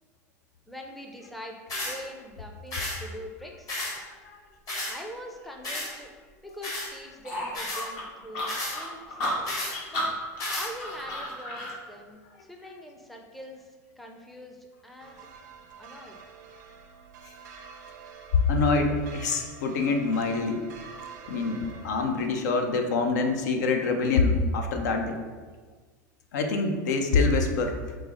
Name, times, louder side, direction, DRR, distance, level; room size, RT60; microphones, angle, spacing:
voice 1, 0.7-3.7 4.9-6.1 6.4-9.0 9.9-10.2 10.6-13.7 14.0-15.3 15.7-16.2, equal, ahead, 1 dB, 0.4 m, -43 dB
sound 1, 1.7-2.0 2.7-3.0 3.7-4.0 4.7-4.9 5.6-5.9 6.6-6.9 7.5-7.8 8.5-8.8 9.5-9.7 10.4-10.7, left 2 dB, 40° left, 1.2 m, -32 dB
sound 2, 7.2-11.8, left 1 dB, 60° left, 1.1 m, -33 dB
sound 3, 15.0-22.3, right 5 dB, 85° right, 0.5 m, -46 dB
voice 2, 18.5-20.6 21.3-25.2 26.3-27.8, left 3 dB, 80° left, 5 dB, 0.5 m, -25 dB
4.7 x 2.0 x 3.6 m, 1.4 s
hypercardioid pair, 110°, 9 cm